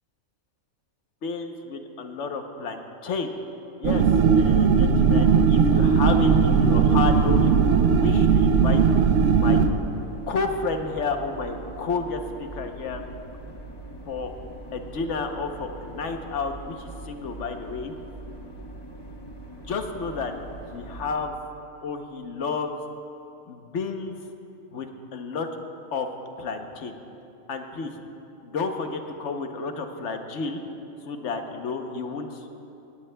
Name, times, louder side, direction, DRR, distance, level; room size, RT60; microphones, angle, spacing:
voice 1, 1.2-3.3 3.8-4.0 4.3-8.8 9.3-9.6 10.3-13.1 14.1-14.3 14.7-17.9 19.6-20.3 20.7-21.3 21.8-22.7 23.5-24.2 24.7-25.5 25.9-26.1 26.4-27.0 27.5-28.0 28.4-30.6 31.0-32.4, left 4 dB, 60° left, 5 dB, 1.1 m, -31 dB
sound 1, 3.8-9.7, right 6 dB, 65° right, 0.9 m, -18 dB
sound 2, 9.4-21.3, right 2 dB, 25° left, 0.7 m, -41 dB
18.5 x 17.5 x 2.2 m, 2.9 s
omnidirectional pair, 1.4 m